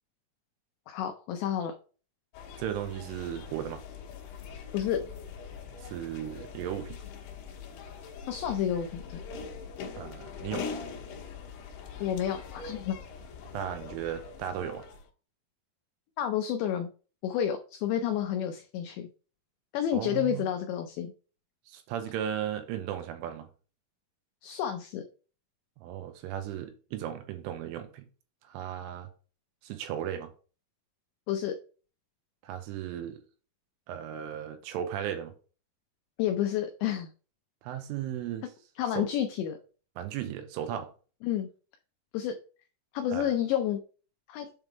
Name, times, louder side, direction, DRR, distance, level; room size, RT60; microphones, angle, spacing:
voice 1, 0.9-1.7 4.7-5.0 8.3-9.2 12.0-13.0 16.2-16.9 17.2-19.1 19.7-21.1 24.4-25.0 31.3-31.6 36.2-37.1 38.8-39.6 41.2-41.5 42.1-42.4 42.9-43.8 44.3-44.5, left 10 dB, 90° left, 2.5 m, -30 dB
sound 1, 2.3-15.1, left 5 dB, 70° left, 2.7 m, -42 dB
voice 2, 2.6-3.8 5.8-7.0 10.0-10.7 13.5-14.8 19.9-20.4 21.7-23.5 25.8-28.1 28.4-29.1 29.6-30.3 32.4-33.2 33.9-35.3 37.6-38.5 39.0-39.1 40.0-40.9 43.1-43.3, right 10 dB, 80° right, 3.2 m, -36 dB
7.8 x 3.6 x 4.6 m
omnidirectional pair, 5.9 m